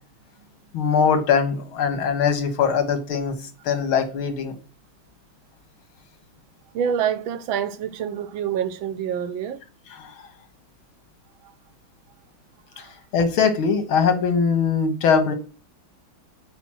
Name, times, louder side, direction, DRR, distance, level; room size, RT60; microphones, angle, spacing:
voice 1, 0.7-4.6 10.0-10.1 12.8-12.9 13.1-15.3, left 6 dB, 80° left, 2.2 m, -21 dB
voice 2, 6.7-9.6 11.4-11.5 12.7-13.0, right 8 dB, 75° right, 1.5 m, -27 dB
8.1 x 5.0 x 6.0 m
omnidirectional pair, 2.3 m